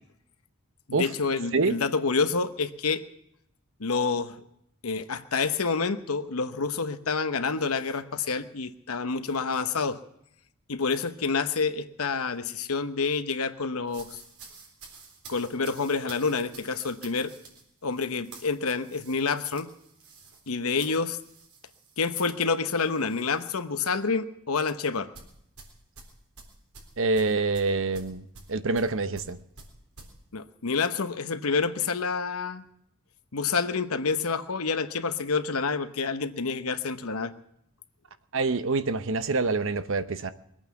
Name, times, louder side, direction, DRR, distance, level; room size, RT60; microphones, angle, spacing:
voice 1, 0.9-3.0 3.8-4.3 4.8-10.0 10.7-14.1 15.3-17.3 17.8-19.7 20.5-21.2 22.0-25.1 30.3-32.6 33.3-37.3, left 4 dB, 80° left, 10 dB, 1.0 m, -28 dB
sound 1, 13.9-23.5 23.8-24.1 25.1-30.1, right 4 dB, 90° right, 3.9 m, -50 dB
voice 2, 27.0-29.4 38.3-40.3, right 3 dB, 60° right, 12 dB, 0.8 m, -26 dB
22.0 x 8.9 x 7.1 m, 0.76 s
head